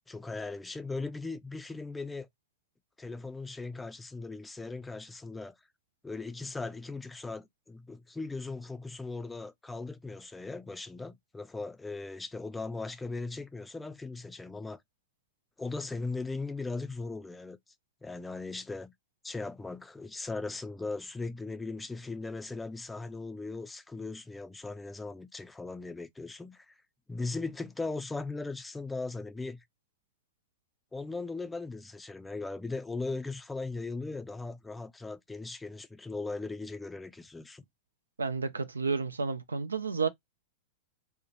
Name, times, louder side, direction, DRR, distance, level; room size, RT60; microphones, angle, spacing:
voice 1, 0.1-2.3 3.0-5.5 6.0-14.8 15.6-17.6 18.0-18.9 19.2-26.7 27.1-29.6 30.9-37.6, left 3 dB, 10° left, 0.4 m, -38 dB
voice 2, 38.2-40.1, right 4 dB, 90° right, 0.4 m, -31 dB
2.8 x 2.1 x 2.4 m
hypercardioid pair, 100°, 0 cm